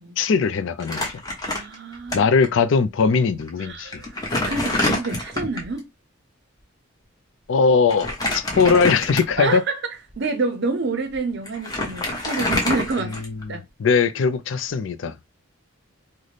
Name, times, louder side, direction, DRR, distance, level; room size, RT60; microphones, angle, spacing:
voice 1, 0.2-1.2 2.1-4.0 7.5-9.6 13.2-15.2, left 5 dB, 65° left, 0.4 m, -20 dB
Crumpling crinkling, 0.8-2.1 2.4-2.5 3.4-3.5 3.9-5.7 7.9-9.5 10.1-10.2 11.1-11.2 11.5-13.5, left 1 dB, 20° left, 0.9 m, -26 dB
voice 2, 1.4-2.3 3.6-5.9 9.4-9.8 10.2-13.2 13.5-13.6, right 3 dB, 55° right, 0.5 m, -28 dB
4.0 x 2.1 x 3.2 m
head